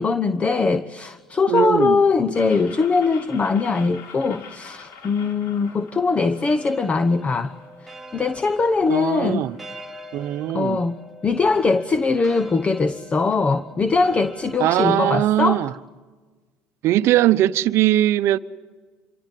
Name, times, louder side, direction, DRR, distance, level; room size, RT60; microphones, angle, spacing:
voice 1, 0.0-7.5 8.1-9.5 10.5-15.6, left 4 dB, 25° left, 1.0 m, -21 dB
voice 2, 1.5-2.0 8.9-9.6 10.1-10.8 14.6-15.7 16.8-18.4, right 14 dB, 65° right, 0.8 m, -20 dB
sound 1, 2.3-9.8, left 6 dB, 70° left, 5.5 m, -45 dB
sound 2, 6.6-14.8, equal, ahead, 1.9 m, -44 dB
26.5 x 23.5 x 7.7 m
supercardioid pair, 90°, 5 cm